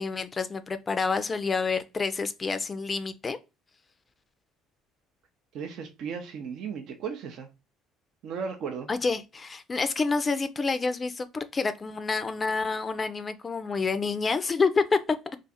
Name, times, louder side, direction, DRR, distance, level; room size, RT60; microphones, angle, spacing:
voice 1, 0.0-3.4 8.9-15.0, left 4 dB, 30° left, 0.4 m, -28 dB
voice 2, 5.5-7.5 8.2-8.9, right 6 dB, 65° right, 0.5 m, -35 dB
2.5 x 2.4 x 4.0 m
supercardioid pair, 70°, 0 cm